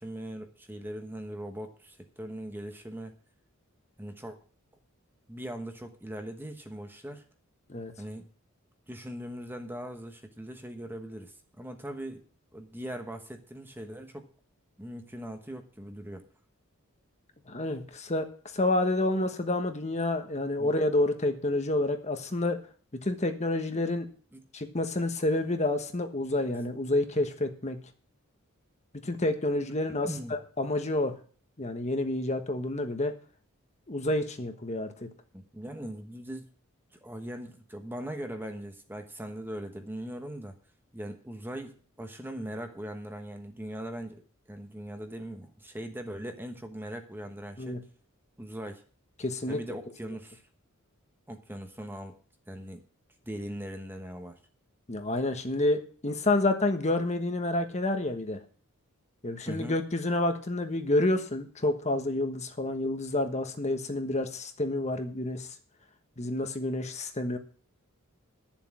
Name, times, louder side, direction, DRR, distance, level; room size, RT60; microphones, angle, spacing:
voice 1, 0.0-3.1 4.0-4.4 5.3-7.2 8.0-8.3 8.9-12.2 12.5-14.3 14.8-16.3 20.6-20.7 24.3-24.4 30.0-30.3 35.3-36.5 36.9-40.6 40.9-47.9 48.4-48.8 49.5-50.4 51.3-52.2 52.5-52.8 53.2-54.4 59.5-59.8, right 1 dB, 10° right, 6 dB, 1.2 m, -40 dB
voice 2, 17.5-18.3 18.5-22.6 22.9-24.1 24.5-27.8 29.0-30.1 30.6-31.1 31.6-33.1 33.9-35.1 47.6-47.8 49.2-49.6 54.9-58.4 59.2-65.5 66.2-67.4, left 2 dB, 30° left, 6 dB, 1.3 m, -29 dB
11.5 x 7.3 x 7.4 m, 0.42 s
head